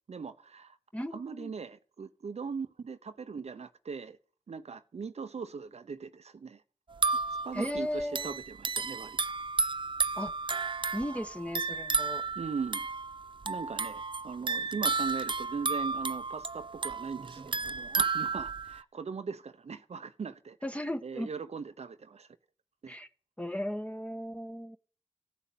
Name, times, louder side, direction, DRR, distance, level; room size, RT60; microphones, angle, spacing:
voice 1, 0.0-0.8 1.1-4.2 4.5-6.6 7.4-9.2 12.4-12.9 13.4-20.6 21.0-22.3 22.8-23.0, right 5 dB, 80° right, 1.0 m, -39 dB
voice 2, 0.9-1.5 7.5-8.4 10.1-10.3 10.9-12.2 20.6-21.3 22.9-23.1 23.4-24.8, equal, 10° left, 1.6 m, -36 dB
sound 1, 6.9-18.8, right 4 dB, 50° right, 0.6 m, -33 dB
15.0 x 7.1 x 9.3 m
cardioid pair, 40°, 11 cm